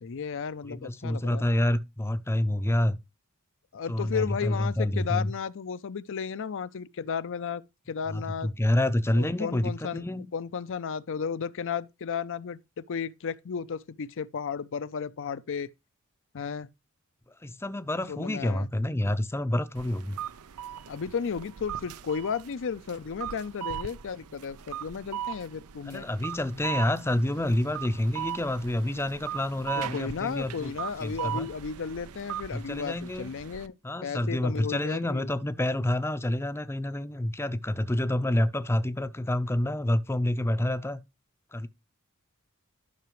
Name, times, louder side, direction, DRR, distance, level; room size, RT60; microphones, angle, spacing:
voice 1, 0.0-1.4 3.7-8.5 9.1-10.0 10.3-15.7 16.3-16.7 18.1-18.7 20.9-26.1 29.8-33.7 34.0-35.3, left 6 dB, 60° left, 0.5 m, -34 dB
voice 2, 0.7-3.0 3.9-5.3 8.1-10.3 17.4-20.2 25.9-30.7 31.0-31.5 32.5-33.3 33.8-41.0 41.5-41.7, left 1 dB, 10° left, 0.5 m, -28 dB
sound 1, 19.8-33.7, right 10 dB, 80° right, 0.6 m, -39 dB
12.5 x 5.9 x 3.1 m
head